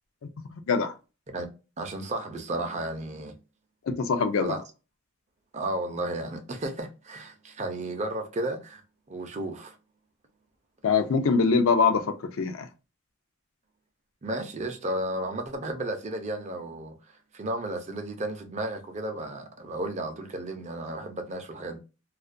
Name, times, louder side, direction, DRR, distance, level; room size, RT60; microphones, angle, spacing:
voice 1, 1.8-3.4 4.4-4.6 5.5-8.8 9.1-9.7 14.2-17.0 17.3-21.8, right 1 dB, 35° right, 0.5 m, -33 dB
voice 2, 3.9-4.6 10.8-12.7, left 5 dB, 70° left, 0.4 m, -23 dB
2.3 x 2.2 x 2.4 m
head